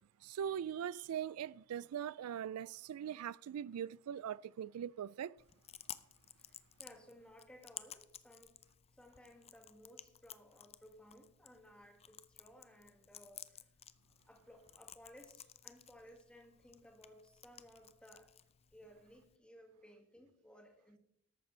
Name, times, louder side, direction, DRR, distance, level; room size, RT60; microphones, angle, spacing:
voice 1, 0.2-5.4, right 9 dB, 80° right, 0.3 m, -41 dB
Chewing mastication, 5.4-19.4, left 10 dB, 25° left, 0.5 m, -56 dB
voice 2, 6.4-8.5 8.9-13.7 14.3-18.3 18.7-21.0, equal, 5° left, 2.0 m, -60 dB
14.0 x 11.5 x 3.3 m
head